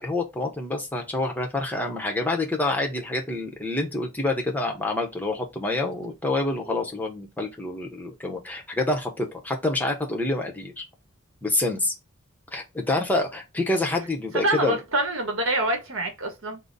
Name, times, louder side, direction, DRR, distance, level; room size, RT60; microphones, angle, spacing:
voice 1, 0.0-10.8 11.4-11.9 12.5-14.8, left 2 dB, 10° left, 0.7 m, -27 dB
voice 2, 14.3-16.6, right 2 dB, 60° right, 1.1 m, -26 dB
3.8 x 2.0 x 3.9 m
head